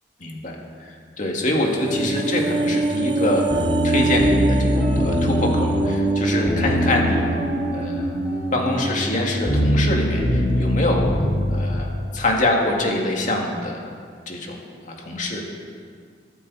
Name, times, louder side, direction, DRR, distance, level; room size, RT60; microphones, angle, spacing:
voice 1, 0.2-3.5 3.8-7.3 7.7-8.1 8.5-11.1 11.5-13.8 14.3-14.6 14.9-15.4, left 1 dB, 45° left, 0 dB, 2.3 m, -25 dB
sound 1, 1.5-9.9 10.2-10.4, right 2 dB, 25° right, 0.5 m, -26 dB
sound 2, 1.9-11.6, equal, 15° left, 2.1 m, -24 dB
Guitar, 4.6-5.8 7.0-8.0 8.2-9.4 10.0-13.5, right 1 dB, 5° right, 3.3 m, -35 dB
22.5 x 9.3 x 4.2 m, 2.1 s
head